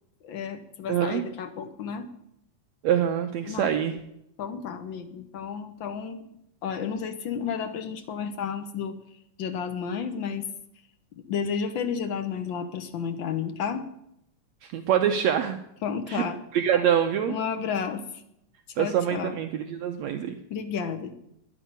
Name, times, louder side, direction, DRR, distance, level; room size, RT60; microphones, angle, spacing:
voice 1, 0.2-2.1 3.5-3.8 4.4-6.2 6.6-8.9 9.4-10.5 11.1-13.9 15.8-16.4 17.3-18.0 18.8-19.4 20.5-21.1, left 6 dB, 85° left, 8 dB, 1.0 m, -32 dB
voice 2, 0.9-1.2 2.8-4.0 14.6-15.6 16.1-16.2 16.5-17.4 18.8-20.4, right 9 dB, 70° right, 6 dB, 1.9 m, -25 dB
11.0 x 10.0 x 9.5 m, 0.78 s
omnidirectional pair, 3.6 m